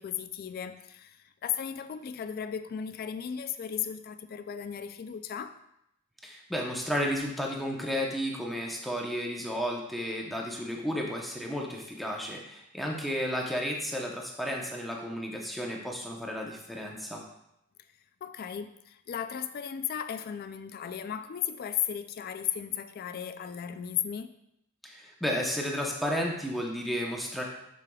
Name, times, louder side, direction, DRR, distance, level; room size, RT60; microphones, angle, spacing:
voice 1, 0.0-5.6 18.2-24.4, left 9 dB, 45° left, 10 dB, 0.3 m, -35 dB
voice 2, 6.2-17.2 24.8-27.4, equal, ahead, -1 dB, 0.8 m, -33 dB
6.6 x 6.2 x 2.3 m, 0.80 s
head